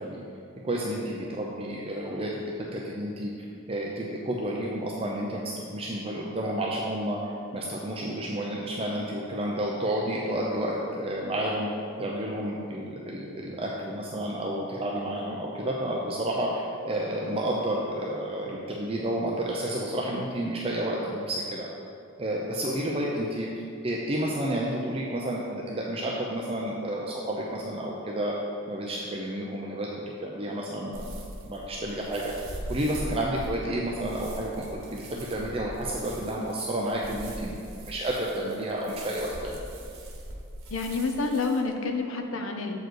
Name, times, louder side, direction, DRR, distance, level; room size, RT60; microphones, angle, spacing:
voice 1, 0.6-2.4 2.7-3.3 3.7-5.4 5.7-7.2 7.5-11.7 12.0-21.7 22.2-23.5 23.8-28.3 28.7-29.9 30.2-31.1 31.4-32.3 32.7-37.5 37.8-39.6, right 1 dB, 30° right, -3 dB, 0.6 m, -30 dB
sound 1, 30.9-41.6, right 1 dB, 85° right, 1.3 m, -41 dB
voice 2, 40.7-42.8, left 3 dB, 75° left, 4 dB, 0.7 m, -28 dB
7.7 x 4.8 x 4.6 m, 2.7 s
head